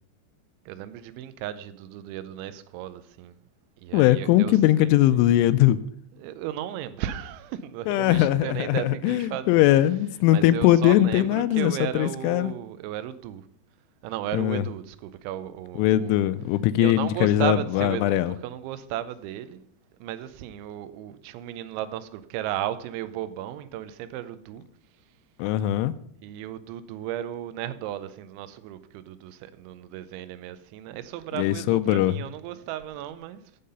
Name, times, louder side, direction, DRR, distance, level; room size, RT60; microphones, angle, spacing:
voice 1, 0.7-3.3 3.8-5.3 6.1-9.7 10.3-13.5 14.0-16.2 16.7-19.7 20.0-24.6 26.2-33.4, right 12 dB, 80° right, 2.9 m, -35 dB
voice 2, 3.9-5.8 7.9-12.5 14.3-14.6 15.8-18.3 25.4-25.9 31.4-32.1, left 14 dB, 90° left, 3.0 m, -21 dB
12.5 x 5.7 x 5.4 m
omnidirectional pair, 5.4 m